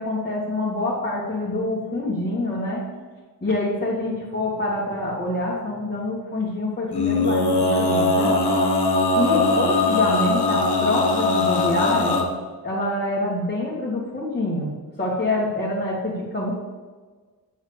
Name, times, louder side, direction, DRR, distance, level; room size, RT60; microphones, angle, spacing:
voice 1, 0.0-2.8 3.4-8.3 9.2-12.2 12.6-16.5, left 1 dB, 25° left, -7 dB, 1.9 m, -26 dB
Male singing, 6.9-12.2, left 2 dB, 80° left, 1.6 m, -20 dB
9.0 x 4.8 x 7.0 m, 1.4 s
wide cardioid pair, 120°, 39 cm